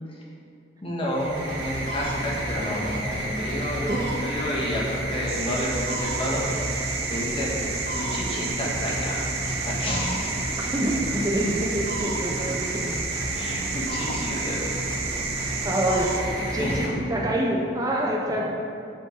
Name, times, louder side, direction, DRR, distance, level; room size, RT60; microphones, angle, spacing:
voice 1, 0.8-3.9 4.2-7.5 7.9-10.7 13.3-15.2 16.6-16.8, equal, 30° left, -4 dB, 1.4 m, -31 dB
sound 1, 1.0-17.5, right 1 dB, 80° right, 1.9 m, -30 dB
voice 2, 3.7-4.1 10.7-13.0 15.6-18.5, right 1 dB, 20° right, -1 dB, 0.6 m, -27 dB
sound 2, 5.3-16.2, right 6 dB, 60° right, 0.7 m, -34 dB
7.8 x 6.5 x 3.8 m, 2.5 s
head